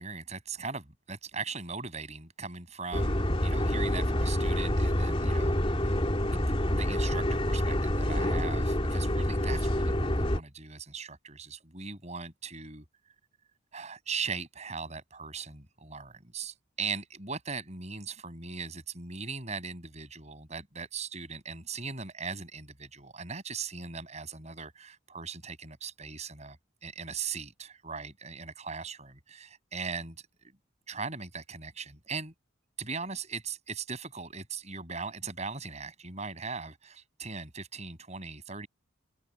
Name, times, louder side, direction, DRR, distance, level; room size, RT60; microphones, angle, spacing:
voice 1, 0.0-12.8 13.7-30.2 30.9-32.3 32.8-38.7, right 5 dB, 35° right, 6.9 m, -39 dB
sound 1, 2.9-10.4, left 1 dB, 25° left, 2.8 m, -27 dB
open air
head